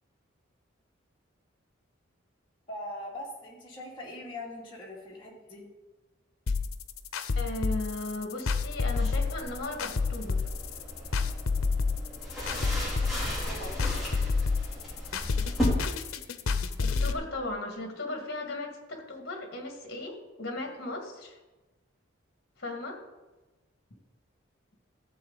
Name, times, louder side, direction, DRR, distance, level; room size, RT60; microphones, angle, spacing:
voice 1, 2.7-5.6 13.3-13.8, left 1 dB, 25° left, -5 dB, 2.4 m, -41 dB
sound 1, 6.5-17.1, left 4 dB, 90° left, 0.7 m, -29 dB
voice 2, 7.3-10.5 16.8-21.4 22.6-23.0, left 2 dB, 50° left, 3 dB, 2.0 m, -37 dB
sound 2, 8.9-15.6, equal, ahead, 3.3 m, -36 dB
14.0 x 7.2 x 4.1 m, 1.1 s
head